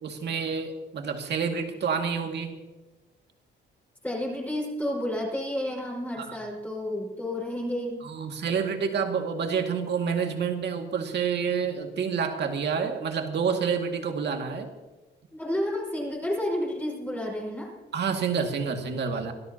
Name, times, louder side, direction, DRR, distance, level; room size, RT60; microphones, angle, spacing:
voice 1, 0.0-2.5 6.2-6.3 8.0-14.7 17.9-19.3, right 6 dB, 60° right, 4 dB, 2.1 m, -28 dB
voice 2, 4.0-8.0 15.3-17.7, left 1 dB, 10° left, -4 dB, 5.1 m, -31 dB
24.5 x 13.0 x 2.9 m, 1.2 s
cardioid pair, 90°, 20 cm